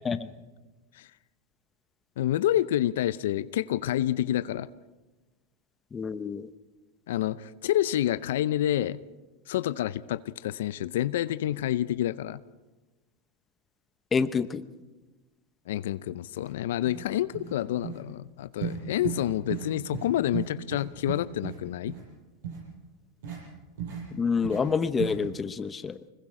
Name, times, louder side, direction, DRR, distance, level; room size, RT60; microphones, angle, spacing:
voice 1, 2.2-4.7 7.1-9.0 9.5-12.4 15.7-21.9, left 12 dB, 80° left, 15 dB, 0.5 m, -28 dB
voice 2, 5.9-6.5 14.1-14.6 24.1-26.0, left 5 dB, 20° left, 12 dB, 0.9 m, -27 dB
sound 1, 16.4-16.5 16.8-17.1 17.3-17.6 17.8-18.0 18.6-18.8 19.0-19.2 19.5-19.7 19.9-20.1 20.3-21.6 21.9-22.0 22.4-22.6 23.2-23.4 23.8-24.0 24.4-24.6 25.0-25.1, right 8 dB, 80° right, 7.8 m, -34 dB
25.0 x 21.0 x 4.9 m, 1.2 s
supercardioid pair, 120°, 0 cm